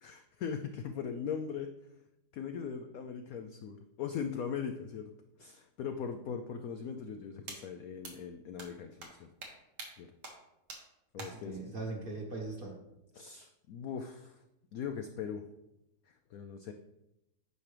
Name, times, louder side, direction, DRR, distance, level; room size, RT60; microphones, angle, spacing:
voice 1, 0.0-1.7 2.3-5.1 5.4-9.3 10.0-10.1 11.1-11.6 13.1-14.4 14.7-15.4 16.1-16.7, left 7 dB, 75° left, 6 dB, 0.8 m, -40 dB
sound 1, 7.5-7.6 8.0-8.1 8.6-8.7 9.0-9.1 9.4-9.5 9.8-9.9 10.2-10.3 10.7-10.8 11.2-11.3, right 3 dB, 65° right, 1.9 m, -43 dB
voice 2, 11.2-12.8, right 3 dB, 35° right, 0 dB, 1.2 m, -40 dB
9.6 x 5.9 x 3.3 m, 0.88 s
omnidirectional pair, 2.0 m